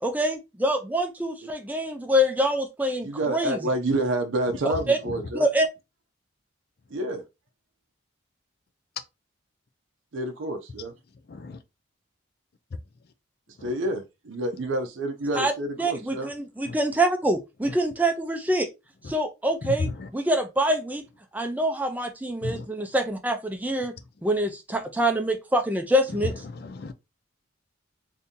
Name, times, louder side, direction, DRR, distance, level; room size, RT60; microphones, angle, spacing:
voice 1, 0.0-3.6 4.9-5.0 5.3-5.7 15.3-15.5 15.8-18.7 19.1-21.1 21.3-23.9 24.2-26.3, right 1 dB, 10° right, 0.4 m, -25 dB
voice 2, 3.0-5.5 6.9-7.2 10.1-10.9 13.6-16.3, right 1 dB, 70° right, 0.5 m, -28 dB
voice 3, 11.3-11.6 13.6-13.7 16.7-16.8 19.6-20.1 22.4-22.5 26.5-26.9, left 3 dB, 50° left, 0.4 m, -33 dB
2.7 x 2.7 x 3.6 m
head